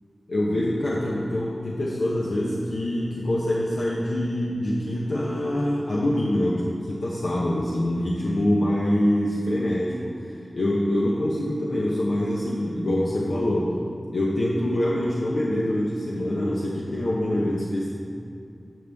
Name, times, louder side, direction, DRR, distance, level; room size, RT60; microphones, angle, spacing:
voice 1, 0.3-10.1 10.5-13.8 14.1-17.9, left 1 dB, 85° left, -5 dB, 0.8 m, -25 dB
12.0 x 5.4 x 3.5 m, 2.5 s
wide cardioid pair, 50°, 0 cm